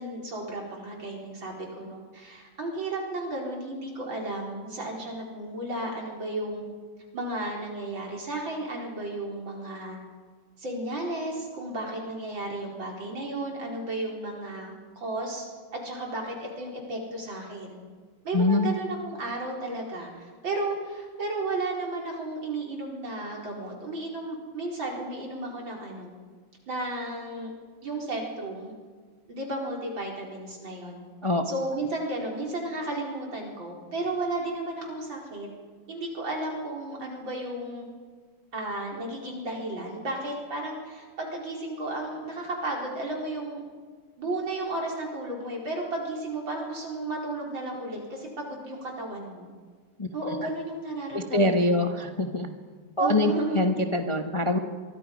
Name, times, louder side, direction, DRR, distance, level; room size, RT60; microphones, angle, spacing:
voice 1, 0.0-6.6 7.1-10.0 10.6-15.5 15.7-17.8 18.2-26.1 26.7-27.5 27.8-28.7 29.3-31.0 31.5-35.5 35.9-37.9 38.5-43.6 44.2-49.5 50.1-51.9 53.0-53.6, right 2 dB, 65° right, -1 dB, 5.2 m, -33 dB
voice 2, 18.3-18.7 31.2-31.4 50.0-50.1 51.1-52.5 53.0-54.6, left 2 dB, 20° left, 4 dB, 1.0 m, -24 dB
26.0 x 23.5 x 5.4 m, 1.5 s
omnidirectional pair, 2.3 m